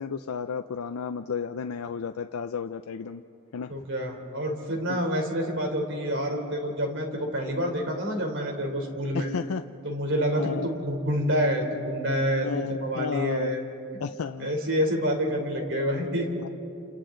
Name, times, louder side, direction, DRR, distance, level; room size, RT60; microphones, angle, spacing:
voice 1, 0.0-3.2 3.5-3.7 4.9-5.0 9.1-9.6 10.4-10.7 12.4-13.5 14.0-14.5 16.4-16.5, left 6 dB, 85° left, 8 dB, 0.5 m, -32 dB
voice 2, 3.7-9.3 9.8-13.6 14.4-16.4, equal, 60° right, 3 dB, 3.3 m, -28 dB
30.0 x 28.5 x 3.8 m, 2.8 s
head